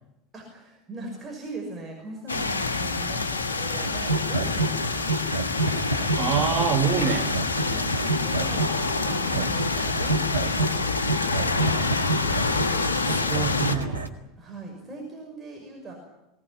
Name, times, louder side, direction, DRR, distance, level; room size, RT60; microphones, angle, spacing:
voice 1, 0.3-5.1 7.6-11.8 13.1-13.7 14.4-15.9, right 2 dB, 20° right, 0 dB, 5.9 m, -41 dB
sound 1, 2.3-13.8, left 3 dB, 75° left, 1.4 m, -27 dB
sound 2, 3.7-14.1, right 2 dB, 90° right, 1.8 m, -29 dB
voice 2, 6.2-7.3 9.3-9.5 12.8-13.0 13.3-14.1, right 6 dB, 45° right, 4 dB, 3.3 m, -26 dB
22.5 x 17.5 x 9.8 m, 0.94 s
figure-of-eight pair, 75°, 0 cm